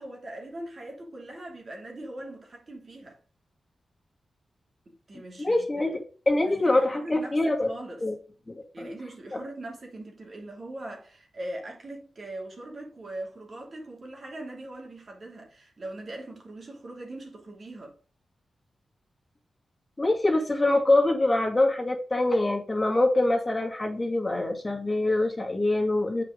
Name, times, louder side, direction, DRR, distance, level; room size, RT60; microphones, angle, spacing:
voice 1, 0.0-3.2 4.9-5.7 6.4-8.0 8.7-17.9, right 1 dB, 55° right, 3.0 m, -41 dB
voice 2, 5.4-6.0 6.3-7.7 8.0-8.1 8.5-8.6 8.8-8.9 20.0-26.2, left 2 dB, 25° left, 2.1 m, -24 dB
7.4 x 5.2 x 5.2 m
cardioid pair, 45°, 0 cm